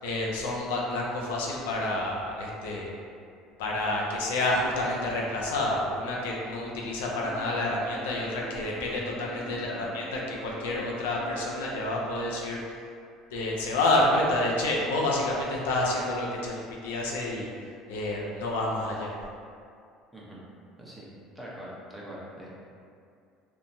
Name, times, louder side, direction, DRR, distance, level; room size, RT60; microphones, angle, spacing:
voice 1, 0.0-2.9 3.6-12.6 13.3-17.5 17.9-19.1, left 2 dB, 85° left, -3 dB, 0.4 m, -29 dB
Bowed string instrument, 7.0-12.5, right 1 dB, 85° right, 0.5 m, -45 dB
voice 2, 9.5-9.8 20.1-20.4 20.8-21.1 21.3-22.5, equal, 5° right, -7 dB, 0.8 m, -43 dB
2.9 x 2.1 x 2.6 m, 2.4 s
supercardioid pair, 85°, 0 cm